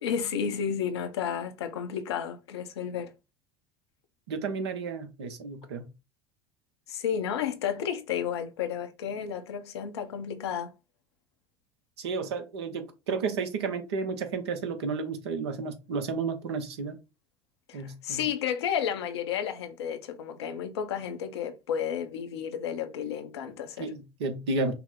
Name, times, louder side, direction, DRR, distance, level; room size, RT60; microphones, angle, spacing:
voice 1, 0.0-3.1 6.9-10.7 17.7-23.9, left 8 dB, 80° left, 0.8 m, -32 dB
voice 2, 4.3-5.9 12.0-17.0 17.7-18.2 23.8-24.7, right 4 dB, 80° right, 0.9 m, -32 dB
5.8 x 2.1 x 3.7 m
hypercardioid pair, 75°, 14 cm